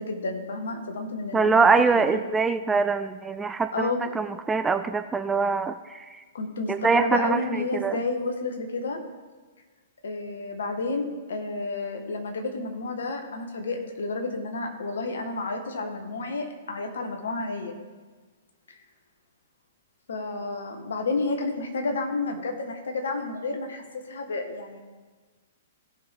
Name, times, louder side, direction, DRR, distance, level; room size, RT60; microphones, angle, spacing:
voice 1, 0.0-2.1 3.7-4.0 6.3-9.0 10.0-17.7 18.7-18.8 20.1-24.8, left 3 dB, 65° left, 3 dB, 1.8 m, -31 dB
voice 2, 1.3-6.2 6.7-8.0, right 4 dB, 10° right, 10 dB, 0.4 m, -24 dB
17.0 x 6.1 x 3.7 m, 1.4 s
figure-of-eight pair, 110°, 0 cm